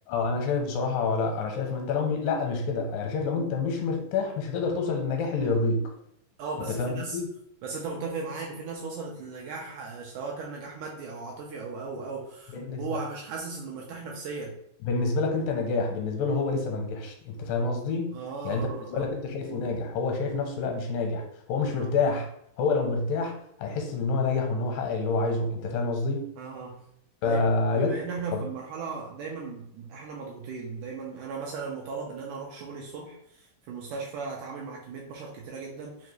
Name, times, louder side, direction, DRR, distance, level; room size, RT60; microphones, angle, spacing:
voice 1, 0.1-5.9 6.8-7.3 12.5-12.8 14.8-18.2 18.4-22.3 22.6-26.3 27.2-28.0 28.3-28.4, left 4 dB, 85° left, 2 dB, 2.3 m, -28 dB
voice 2, 6.4-7.2 7.6-14.6 18.1-19.1 21.7-21.9 26.4-26.8 27.2-27.4 27.8-36.1, right 4 dB, 80° right, -2 dB, 1.9 m, -37 dB
5.3 x 2.4 x 3.1 m, 0.71 s
omnidirectional pair, 4.1 m